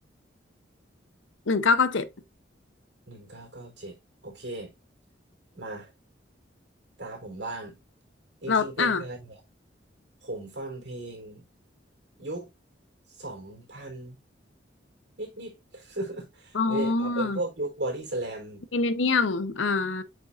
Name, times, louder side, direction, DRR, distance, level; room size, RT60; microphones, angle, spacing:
voice 1, 1.5-2.1 8.5-9.0 16.5-17.4 18.7-20.0, left 4 dB, 85° left, 0.8 m, -24 dB
voice 2, 3.1-4.0 4.2-4.7 5.5-5.9 7.0-7.8 8.4-9.4 10.2-11.4 12.2-12.5 13.1-14.2 15.2-18.6, right 2 dB, 60° right, 3.8 m, -36 dB
8.1 x 5.3 x 2.5 m
head